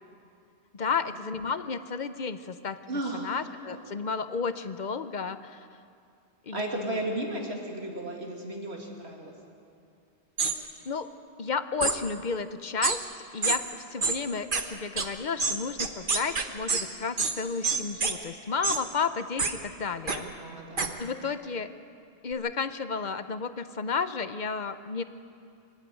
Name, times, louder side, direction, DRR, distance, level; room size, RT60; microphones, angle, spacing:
voice 1, 0.7-2.8 3.1-5.7 6.5-7.0 10.9-11.1 11.4-13.0 13.3-20.3 21.0-21.7 22.2-25.0, left 5 dB, 45° left, 11 dB, 0.8 m, -32 dB
voice 2, 2.9-3.3 6.5-9.3 20.1-21.0, right 1 dB, 65° right, 0 dB, 2.8 m, -34 dB
sound 1, 10.4-10.5 11.8-12.0 12.8-13.0 13.4-13.6 14.0-14.2 14.5-14.6 15.0-15.1 15.4-16.8 17.2-17.3 17.6-18.1 18.6-18.8 19.4-19.5 20.1-20.2 20.8-20.9, right 4 dB, 50° right, 1.4 m, -26 dB
24.5 x 12.5 x 9.1 m, 2.4 s
omnidirectional pair, 1.2 m